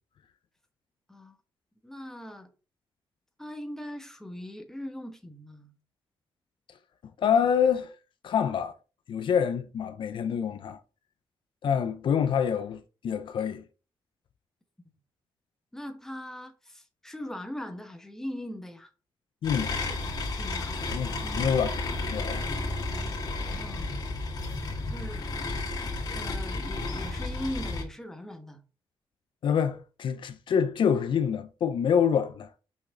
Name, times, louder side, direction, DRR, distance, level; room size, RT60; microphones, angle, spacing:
voice 1, 1.8-2.5 3.4-5.8 15.7-18.9 19.9-20.0 20.4-21.5 23.5-24.0 24.9-25.3 26.1-28.6, left 1 dB, 5° left, 1.2 m, -40 dB
voice 2, 7.2-7.9 8.2-8.7 9.1-10.8 11.6-13.7 19.4-19.8 20.7-22.5 29.4-32.5, left 7 dB, 60° left, 0.7 m, -26 dB
sound 1, 19.4-27.8, left 2 dB, 45° left, 2.0 m, -32 dB
6.0 x 5.9 x 4.0 m
wide cardioid pair, 150°, 9 cm